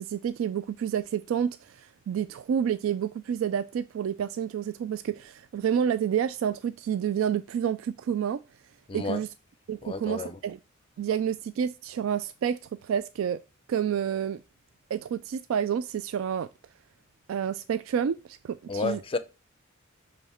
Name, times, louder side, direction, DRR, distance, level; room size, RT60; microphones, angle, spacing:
voice 1, 0.0-8.4 8.9-9.3 9.7-10.6 11.0-13.4 13.7-14.4 14.9-16.5 17.3-19.0, right 8 dB, 75° right, 0.3 m, -29 dB
voice 2, 8.9-9.2 9.8-10.4 18.7-19.2, left 4 dB, 25° left, 0.5 m, -31 dB
7.0 x 3.2 x 4.3 m
head